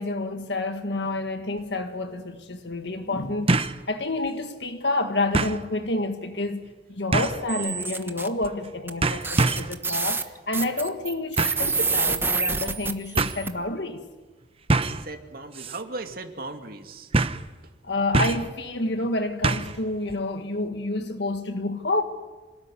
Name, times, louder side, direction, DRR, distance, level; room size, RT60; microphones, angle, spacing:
voice 1, 0.0-3.6 3.9-14.0 17.8-22.0, left 2 dB, 70° left, 1.8 m, -29 dB
sound 1, 1.6-1.7 3.5-3.8 4.3-4.4 5.3-5.6 7.1-7.5 8.4-8.7 9.0-9.8 11.4-11.7 12.7-12.8 13.2-13.4 14.7-15.1 15.5-15.8 16.1-16.2 17.1-17.5 18.1-18.5 19.4-19.8 20.1-20.2, right 3 dB, 30° right, 0.9 m, -24 dB
sound 2, 7.5-8.3 8.9-9.0 9.2-13.5, right 4 dB, 10° right, 1.2 m, -27 dB
voice 2, 14.8-17.1, right 2 dB, 55° right, 2.4 m, -37 dB
26.5 x 19.0 x 10.0 m
head